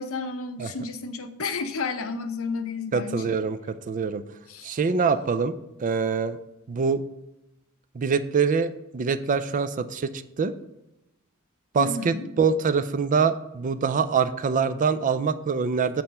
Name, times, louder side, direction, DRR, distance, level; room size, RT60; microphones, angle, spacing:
voice 1, 0.0-3.4 4.5-4.7 11.8-12.3, left 4 dB, 65° left, 8 dB, 0.7 m, -31 dB
voice 2, 2.9-4.2 4.6-5.5 5.8-6.4 6.7-7.0 7.9-10.1 10.4-10.5 11.7-16.0, right 5 dB, 35° right, 13 dB, 0.4 m, -24 dB
7.8 x 4.3 x 5.3 m, 0.90 s
head